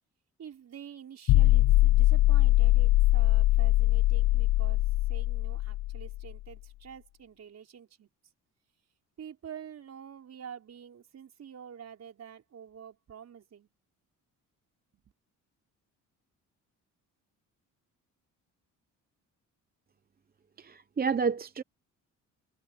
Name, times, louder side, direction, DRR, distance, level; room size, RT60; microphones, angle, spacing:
voice 1, 0.4-8.1 9.2-13.7, right 8 dB, 50° right, 5.6 m, -47 dB
sound 1, 1.3-6.3, left 16 dB, 80° left, 0.7 m, -22 dB
voice 2, 20.6-21.6, right 5 dB, 30° right, 0.8 m, -30 dB
cardioid pair, 105°, 33 cm